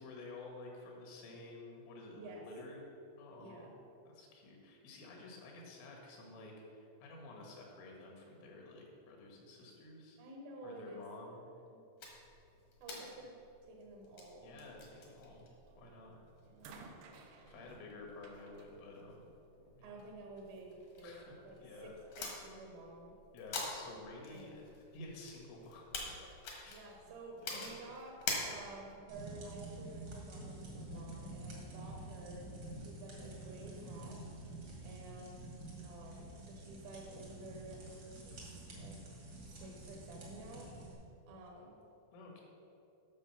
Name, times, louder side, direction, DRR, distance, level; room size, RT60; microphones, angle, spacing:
voice 1, 0.0-2.9 3.2-3.7 4.1-10.2 10.6-11.4 14.4-15.5 15.8-16.2 17.5-19.2 19.8-20.1 21.0-21.3 21.6-21.9 23.3-26.3 26.6-26.8 27.4-27.8 42.1-42.4, left 2 dB, 80° left, 0 dB, 4.0 m, -51 dB
voice 2, 3.4-3.8 10.2-11.0 11.7-11.8 12.8-13.3 13.6-14.6 16.5-16.9 19.8-21.6 21.8-23.1 24.3-24.5 26.7-28.2 28.4-32.5 32.7-34.2 34.8-35.5 35.8-39.0 39.6-40.7 41.3-41.8 42.4-42.5, right 2 dB, 70° right, 0 dB, 2.3 m, -51 dB
sound 1, 12.0-29.0, left 3 dB, 65° left, 1.9 m, -48 dB
sound 2, 15.7-16.0 16.6-19.9 20.9-21.0, right 4 dB, 85° right, 2.3 m, -57 dB
sound 3, 29.1-40.9, right 2 dB, 55° right, 1.2 m, -49 dB
9.9 x 6.6 x 5.6 m, 2.8 s
omnidirectional pair, 5.6 m